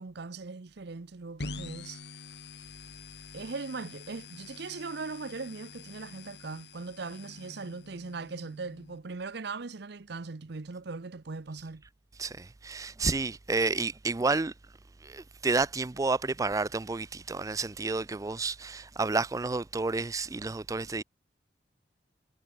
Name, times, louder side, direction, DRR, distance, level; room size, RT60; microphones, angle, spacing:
voice 1, 0.0-2.0 3.3-11.8, right 4 dB, 65° right, 0.8 m, -39 dB
sound 1, 1.4-9.0, left 3 dB, 65° left, 2.6 m, -46 dB
voice 2, 12.2-14.5 15.0-21.0, right 3 dB, 20° right, 0.4 m, -30 dB
head